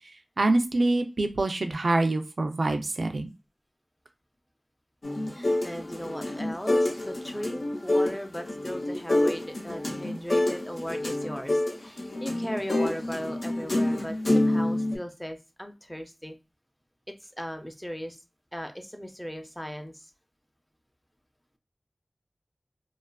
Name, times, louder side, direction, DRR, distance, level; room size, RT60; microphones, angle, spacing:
voice 1, 0.4-3.3, right 2 dB, 80° right, 6 dB, 0.4 m, -25 dB
sound 1, 5.0-15.0, left 1 dB, 70° left, 0.6 m, -27 dB
voice 2, 5.3-16.4 17.1-18.2 18.5-20.1, equal, 10° left, 6 dB, 0.5 m, -37 dB
2.4 x 2.3 x 2.3 m, 0.26 s
wide cardioid pair, 50°, 0 cm